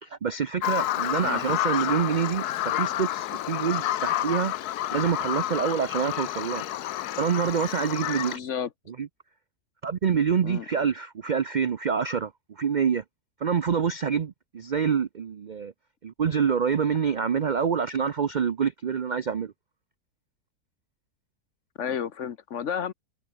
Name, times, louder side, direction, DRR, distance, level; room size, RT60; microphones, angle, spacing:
voice 1, 0.0-4.5 4.9-6.6 7.2-8.4 9.0-9.1 9.8-13.0 13.4-15.7 16.0-19.5, right 7 dB, 65° right, 0.4 m, -26 dB
Bird vocalization bird call bird song, 0.6-8.4, left 13 dB, 85° left, 1.2 m, -29 dB
voice 2, 8.3-8.7 10.4-10.7 21.8-22.9, left 8 dB, 55° left, 1.1 m, -31 dB
omnidirectional pair, 1.6 m